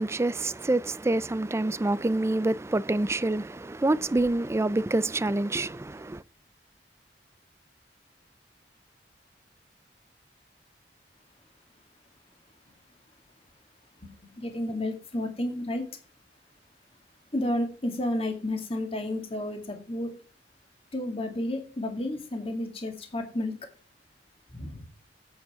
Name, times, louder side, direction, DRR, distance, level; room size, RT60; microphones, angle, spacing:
voice 1, 0.0-6.2, right 2 dB, 15° right, 0.4 m, -27 dB
voice 2, 14.0-15.9 17.3-20.2 20.9-23.5 24.5-24.9, left 1 dB, 35° left, 2.1 m, -31 dB
8.7 x 8.1 x 4.8 m
head